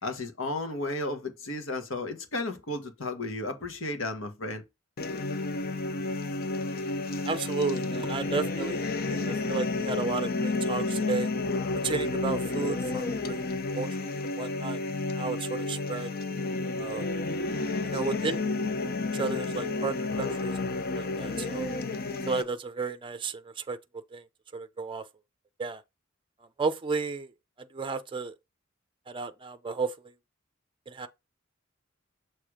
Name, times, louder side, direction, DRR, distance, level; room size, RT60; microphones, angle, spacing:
voice 1, 0.0-4.6, left 2 dB, 70° left, 1.6 m, -33 dB
sound 1, 5.0-22.4, left 3 dB, 50° left, 0.7 m, -31 dB
voice 2, 7.3-11.3 11.8-13.4 13.7-14.8 15.2-16.1 16.8-17.1 17.8-18.4 19.1-20.6 21.0-21.7 22.3-23.8 24.1-24.2 24.5-25.0 25.6-25.8 26.6-27.3 27.6-28.4 29.1-29.9 30.9-31.1, right 4 dB, 25° right, 0.5 m, -33 dB
6.8 x 3.1 x 4.9 m
head